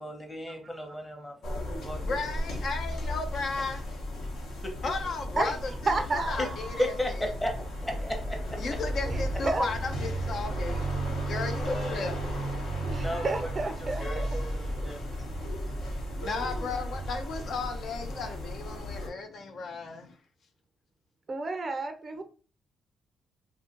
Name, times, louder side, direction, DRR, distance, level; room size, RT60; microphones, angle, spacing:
voice 1, 0.0-2.0 4.2-4.9 6.4-6.5 6.8-8.6 11.6-12.2 12.7-16.3 18.8-20.1, left 1 dB, 10° left, 0.8 m, -37 dB
sound 1, 1.4-19.1, equal, 75° left, 1.0 m, -34 dB
voice 2, 2.0-3.8 4.8-6.9 8.6-10.9 11.3-12.2 16.1-20.1, left 4 dB, 60° left, 0.5 m, -35 dB
voice 3, 5.9-6.9 9.1-9.7 12.8-14.4 21.3-22.2, right 3 dB, 35° right, 0.4 m, -31 dB
2.6 x 2.4 x 3.7 m
cardioid pair, 90°, 0 cm